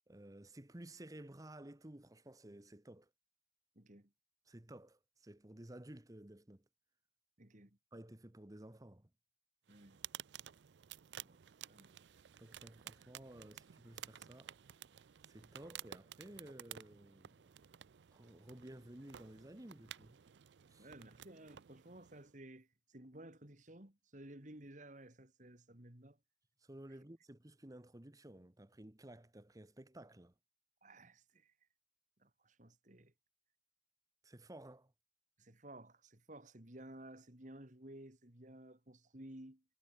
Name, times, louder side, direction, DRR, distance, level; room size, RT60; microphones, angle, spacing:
voice 1, 0.1-3.1 4.5-6.6 7.9-9.1 12.4-14.5 15.3-17.5 18.1-20.2 20.7-20.9 26.6-30.3 34.2-34.9, right 1 dB, 20° right, 1.1 m, -54 dB
voice 2, 3.7-4.1 7.4-7.8 9.7-10.0 11.2-11.4 11.7-11.9 20.8-26.2 30.8-31.5 32.2-33.1 35.4-39.6, right 1 dB, 45° right, 3.0 m, -55 dB
sound 1, 9.7-22.3, right 11 dB, 90° right, 0.5 m, -54 dB
head